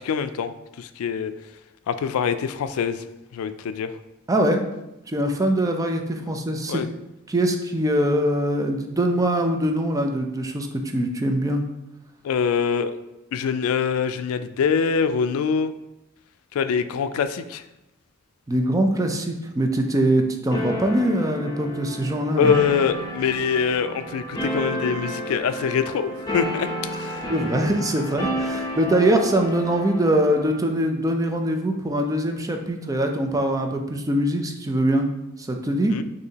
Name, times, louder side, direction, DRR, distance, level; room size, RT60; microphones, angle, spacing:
voice 1, 0.0-1.3 1.9-3.0 3.3-3.9 6.7-6.9 12.2-12.9 13.3-15.7 16.5-17.6 22.4-27.2 35.9-36.0, left 6 dB, 90° left, 11 dB, 0.3 m, -24 dB
voice 2, 4.3-4.6 5.1-6.8 7.3-11.6 18.5-22.5 27.3-35.1 35.4-36.0, right 1 dB, 15° right, 4 dB, 0.4 m, -23 dB
sound 1, 20.5-30.6, equal, 20° left, 0.8 m, -31 dB
6.4 x 2.7 x 2.8 m, 0.92 s
head